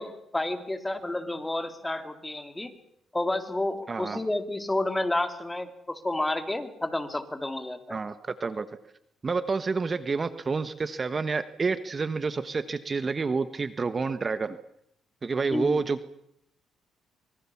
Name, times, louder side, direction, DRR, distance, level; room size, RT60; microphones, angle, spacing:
voice 1, 0.0-2.7 3.1-8.0 15.5-15.8, left 1 dB, 15° left, 7 dB, 3.2 m, -30 dB
voice 2, 3.9-4.2 7.9-8.7 9.2-14.6 15.2-16.1, right 4 dB, 35° right, 12 dB, 1.2 m, -29 dB
25.5 x 23.5 x 7.2 m, 0.74 s
cardioid pair, 90°, 0 cm